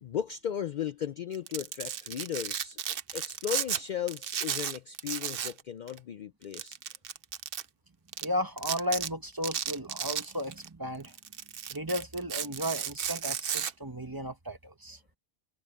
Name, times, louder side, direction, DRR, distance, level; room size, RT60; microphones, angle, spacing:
voice 1, 0.0-2.8 3.1-6.8, left 9 dB, 55° left, 0.5 m, -36 dB
Domestic sounds home sounds, 1.3-3.8 4.1-5.6 5.9-6.0 6.5-7.6 8.1-8.3 8.6-9.1 9.4-10.7 11.1-13.7, right 8 dB, 65° right, 0.9 m, -34 dB
voice 2, 8.2-11.1 11.7-15.0, equal, 20° right, 1.1 m, -34 dB
omnidirectional pair, 1.1 m